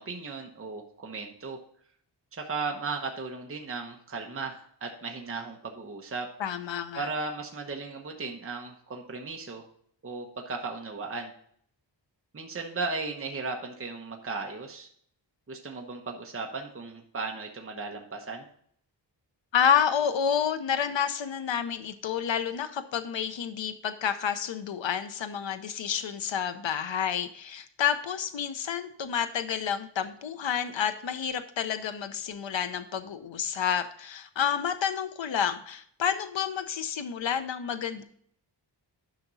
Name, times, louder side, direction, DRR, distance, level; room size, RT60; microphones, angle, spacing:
voice 1, 0.0-1.6 2.3-6.3 6.9-9.6 10.0-11.3 12.3-14.9 15.5-18.4, right 4 dB, 30° right, 2 dB, 1.0 m, -36 dB
voice 2, 6.4-7.1 19.5-38.0, left 8 dB, 80° left, 9 dB, 0.8 m, -29 dB
10.5 x 6.0 x 3.9 m, 0.63 s
wide cardioid pair, 140°, 44 cm